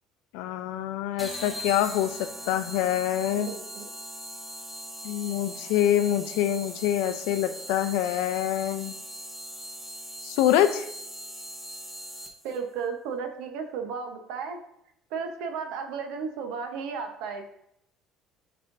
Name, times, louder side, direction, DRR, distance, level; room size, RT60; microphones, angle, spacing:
voice 1, 0.3-3.5 5.0-8.9 10.2-10.9, left 11 dB, 90° left, 10 dB, 0.5 m, -25 dB
sound 1, 1.2-12.6, equal, ahead, 0.8 m, -40 dB
voice 2, 3.3-3.9 12.4-14.6 15.1-17.5, right 5 dB, 80° right, 5 dB, 0.9 m, -34 dB
9.0 x 4.3 x 2.6 m, 0.77 s
cardioid pair, 155°, 0 cm